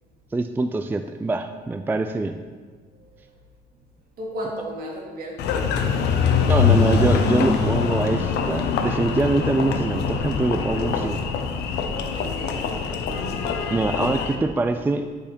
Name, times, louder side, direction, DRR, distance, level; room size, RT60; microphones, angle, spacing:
voice 1, 0.3-2.4 6.4-11.2 13.7-15.1, right 3 dB, 10° right, 8 dB, 0.3 m, -24 dB
voice 2, 2.9-3.4 4.2-5.8 12.1-12.7, equal, 60° right, -2 dB, 2.3 m, -35 dB
Engine, 5.4-14.4, left 6 dB, 75° left, 0.8 m, -23 dB
11.0 x 5.0 x 4.3 m, 1.5 s
cardioid pair, 110°, 17 cm